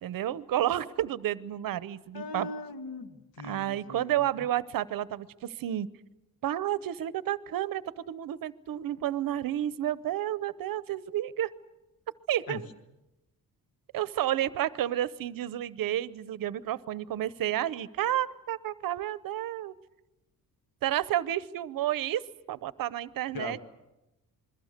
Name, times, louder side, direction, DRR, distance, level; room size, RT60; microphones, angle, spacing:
voice 1, 0.0-2.5 3.4-5.9 6.4-11.5 12.3-12.7 13.9-19.7 20.8-22.2 22.5-23.6, right 12 dB, 70° right, 17 dB, 0.8 m, -31 dB
voice 2, 2.1-4.5 12.5-12.6 23.3-23.6, left 3 dB, 75° left, 8 dB, 1.9 m, -40 dB
27.5 x 22.0 x 6.6 m, 0.97 s
wide cardioid pair, 180°, 36 cm